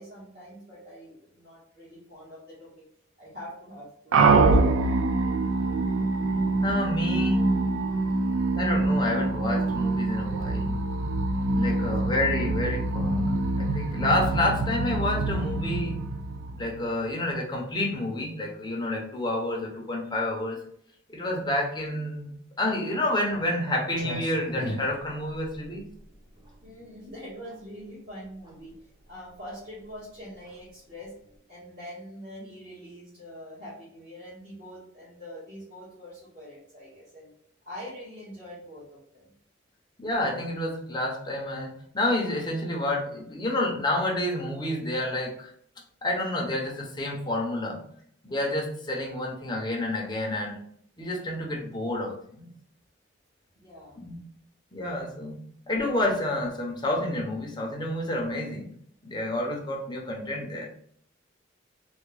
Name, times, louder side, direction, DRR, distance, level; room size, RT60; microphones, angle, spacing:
voice 1, 0.0-2.9 3.2-4.8 26.6-28.7 29.1-31.1 31.5-37.3 37.6-39.3 53.5-54.0, equal, 50° right, -10 dB, 1.3 m, -44 dB
sound 1, 4.1-17.0, right 3 dB, 85° right, 0.4 m, -25 dB
voice 2, 6.6-7.5 8.5-10.9 11.5-16.0 16.5-20.6 21.1-25.9 40.0-45.5 46.0-47.8 48.2-50.6 51.0-52.5 54.0-54.2 54.7-55.4 55.7-58.7 59.0-60.7, left 1 dB, 20° left, -1 dB, 0.6 m, -29 dB
Clock, 24.0-31.4, equal, 20° right, 0.8 m, -41 dB
3.4 x 2.2 x 3.1 m, 0.66 s
head